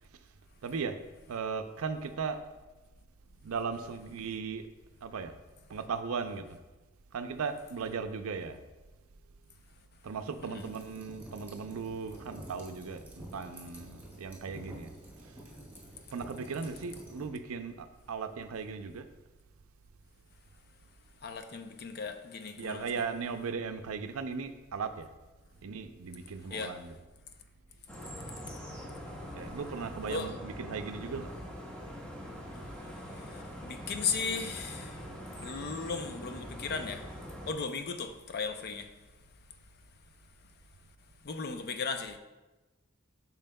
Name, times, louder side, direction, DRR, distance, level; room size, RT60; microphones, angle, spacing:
voice 1, 0.6-1.0 1.3-2.4 3.4-4.7 5.0-5.3 5.7-6.6 7.1-8.6 10.0-14.9 15.2-15.3 16.1-19.1 22.6-25.1 25.6-27.1 29.3-31.3, right 5 dB, 80° right, 9 dB, 0.5 m, -37 dB
Forge - Coal burning, 10.6-17.3, right 1 dB, 10° right, 2.0 m, -49 dB
voice 2, 21.2-22.9 26.5-26.8 30.1-30.3 33.2-35.1 35.4-37.1 37.5-38.9 41.2-42.2, left 5 dB, 50° left, 7 dB, 0.5 m, -36 dB
sound 1, 27.9-37.5, equal, 5° left, 1.1 m, -43 dB
8.8 x 5.9 x 2.2 m, 1.1 s
head